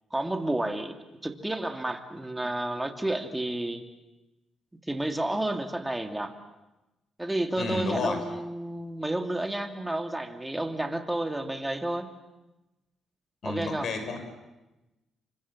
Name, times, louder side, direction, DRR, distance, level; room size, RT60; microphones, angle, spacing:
voice 1, 0.1-1.0 1.2-3.9 4.9-6.3 7.2-12.1 13.4-13.9, right 1 dB, 10° right, 6 dB, 2.8 m, -31 dB
voice 2, 7.6-8.2 13.4-14.2, left 4 dB, 60° left, 7 dB, 5.8 m, -31 dB
29.5 x 25.0 x 7.6 m, 1.0 s
cardioid pair, 90°, 0 cm